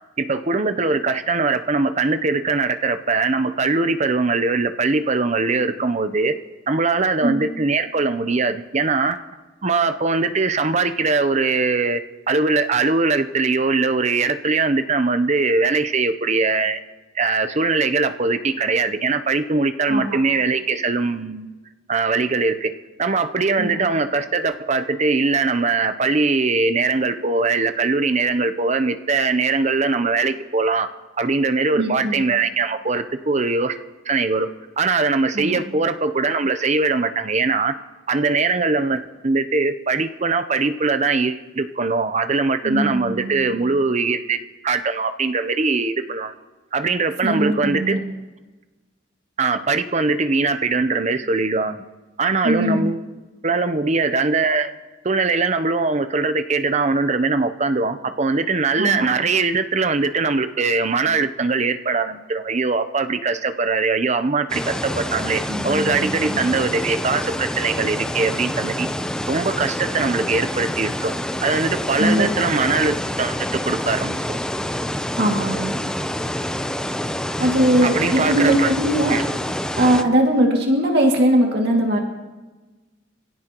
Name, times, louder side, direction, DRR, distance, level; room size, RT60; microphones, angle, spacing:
voice 1, 0.2-6.3 6.7-9.2 9.6-16.8 17.1-21.5 21.9-22.7 23.0-30.9 31.2-33.8 34.1-34.5 34.8-37.7 38.1-46.3 46.7-48.0 49.4-51.8 52.2-53.0 53.4-54.7 55.0-68.9 69.3-71.1 71.4-74.4 77.8-78.7 79.1-79.2, right 4 dB, 35° right, 10 dB, 0.7 m, -21 dB
voice 2, 19.9-20.2 23.6-23.8 31.7-32.2 35.3-35.6 42.6-43.5 47.2-48.0 52.4-52.9 58.8-59.1 65.5-66.4 72.0-72.3 75.2-75.7 77.4-79.2 79.8-82.0, right 1 dB, 60° right, 0 dB, 2.3 m, -20 dB
sound 1, 64.5-80.0, left 1 dB, 5° left, 0.6 m, -27 dB
26.0 x 16.5 x 3.0 m, 1.2 s
head